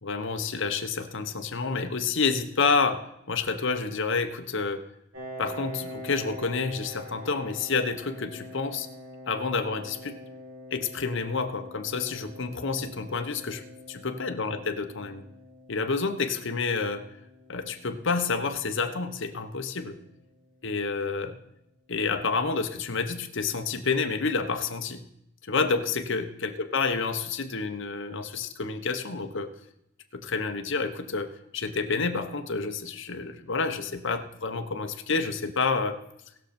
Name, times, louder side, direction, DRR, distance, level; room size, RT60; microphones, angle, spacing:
voice 1, 0.0-4.8 5.4-8.9 9.3-10.2 10.7-13.6 13.9-15.2 15.7-17.1 17.5-20.0 20.6-21.4 21.9-25.0 25.4-29.5 30.1-36.0, left 4 dB, 65° left, 7 dB, 1.1 m, -29 dB
Piano, 5.1-20.5, left 1 dB, 80° right, 4.7 m, -45 dB
19.5 x 6.6 x 4.3 m, 0.78 s
head